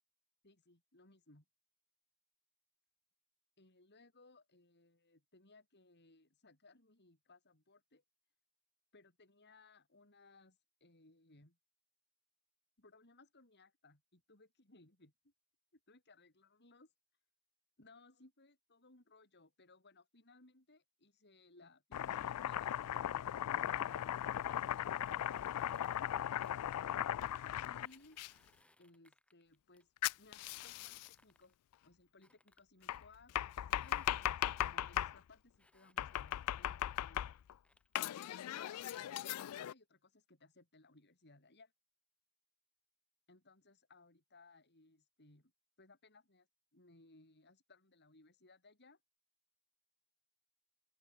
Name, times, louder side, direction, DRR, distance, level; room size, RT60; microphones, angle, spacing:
voice 1, 0.4-1.4 3.6-8.0 8.9-11.6 12.8-15.3 15.7-16.9 17.8-24.3 24.7-25.4 27.6-28.2 28.8-29.9 30.2-31.6 31.8-37.3 38.2-41.7 43.3-45.5 45.8-46.5 46.7-49.0, left 3 dB, 50° left, 4.6 m, -64 dB
Domestic sounds home sounds, 21.9-28.3 30.0-31.1 32.9-35.2 36.0-37.5 38.0-39.7, left 11 dB, 85° left, 0.3 m, -38 dB
sound 1, 23.7-26.7 27.7-29.9 30.6-31.7 32.2-33.0 33.7-34.6 35.6-37.0 37.6-38.2 38.7-39.7, left 1 dB, 5° left, 5.9 m, -72 dB
open air
head